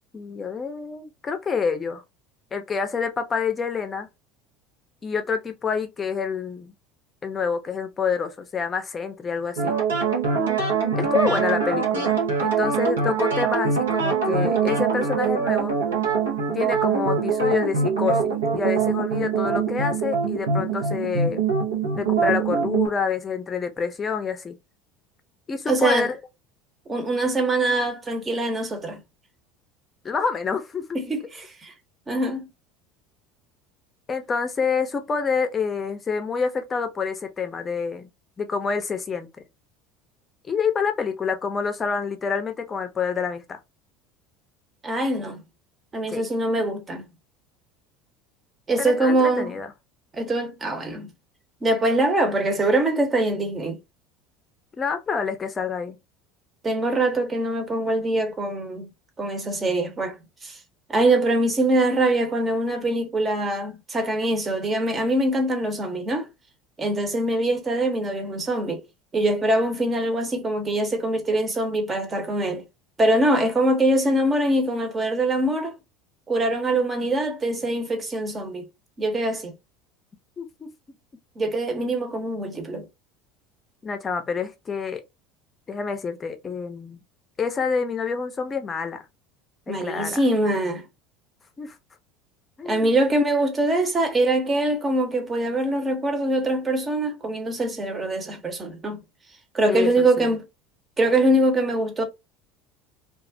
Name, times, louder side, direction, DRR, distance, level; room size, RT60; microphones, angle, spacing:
voice 1, 0.1-2.0 2.5-4.1 5.0-6.7 7.2-9.7 11.0-15.8 16.5-21.4 22.0-24.6 25.5-26.2 30.0-31.0 34.1-38.1 38.4-39.3 40.5-43.6 46.1-46.2 48.8-49.7 54.8-56.0 76.7-76.8 80.4-80.7 83.8-85.0 85.7-87.0 87.4-89.1 89.7-90.2 91.6-91.8 92.6-92.9 99.7-100.3, left 5 dB, 30° left, 0.5 m, -27 dB
sound 1, 9.6-22.9, right 5 dB, 85° right, 0.6 m, -23 dB
voice 2, 25.7-26.1 26.9-29.0 30.9-31.7 32.1-32.5 44.8-45.4 45.9-47.0 48.7-49.5 50.1-51.1 51.6-53.8 56.6-58.9 59.2-60.2 60.4-60.6 60.9-66.3 66.8-68.8 69.1-72.6 73.0-75.7 76.3-78.6 79.0-79.5 81.4-82.9 89.7-90.9 92.6-99.0 99.5-100.4 101.0-102.0, right 1 dB, 25° right, 0.8 m, -23 dB
2.3 x 2.0 x 2.6 m
hypercardioid pair, 75°, 0 cm